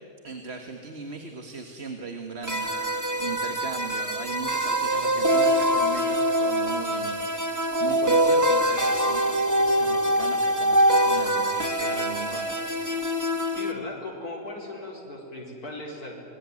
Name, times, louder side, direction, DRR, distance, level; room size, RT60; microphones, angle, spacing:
voice 1, 0.2-12.9, right 4 dB, 45° right, 5 dB, 1.9 m, -38 dB
sound 1, 2.4-13.7, equal, 10° right, 1.8 m, -24 dB
voice 2, 13.5-16.2, left 2 dB, 85° left, -2 dB, 4.9 m, -37 dB
27.0 x 22.5 x 9.7 m, 2.8 s
omnidirectional pair, 1.6 m